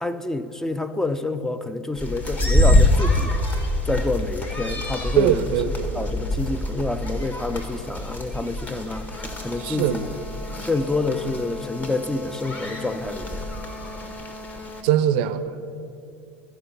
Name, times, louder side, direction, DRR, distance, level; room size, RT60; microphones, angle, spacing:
voice 1, 0.0-3.4 3.9-5.4 5.9-10.0 10.7-13.4, left 2 dB, 5° left, 11 dB, 0.4 m, -28 dB
sound 1, 2.0-14.8, left 1 dB, 25° left, 1.3 m, -26 dB
voice 2, 5.2-6.1 9.6-10.1 14.8-15.5, right 10 dB, 60° right, 13 dB, 0.5 m, -22 dB
13.0 x 4.9 x 6.6 m, 2.7 s
hypercardioid pair, 80°, 6 cm